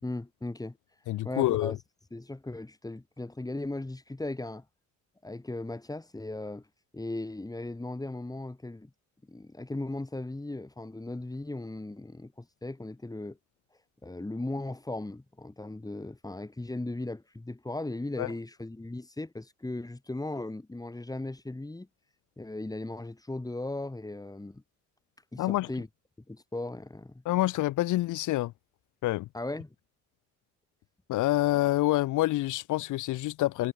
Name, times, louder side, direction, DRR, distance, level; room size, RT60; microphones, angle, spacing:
voice 1, 0.0-0.8 1.2-1.8 2.1-4.6 5.2-6.6 6.9-8.9 9.3-13.4 14.0-21.9 22.4-24.6 25.3-25.9 26.3-27.2 29.3-29.8, left 2 dB, 10° left, 3.5 m, -37 dB
voice 2, 1.1-1.8 18.2-18.3 25.4-25.7 27.2-28.5 29.0-29.3 31.1-33.7, left 16 dB, 80° left, 0.8 m, -27 dB
cardioid pair, 90°, 30 cm